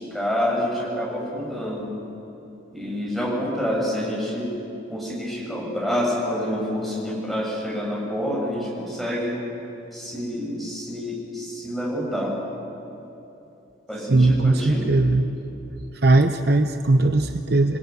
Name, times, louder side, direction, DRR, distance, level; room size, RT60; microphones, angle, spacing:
voice 1, 0.0-1.9 2.7-4.5 4.9-9.4 9.9-12.3 13.9-14.9, equal, ahead, -4 dB, 7.1 m, -27 dB
voice 2, 14.1-15.3 16.0-17.8, right 2 dB, 55° right, 6 dB, 0.9 m, -19 dB
28.5 x 18.5 x 9.5 m, 2.9 s
head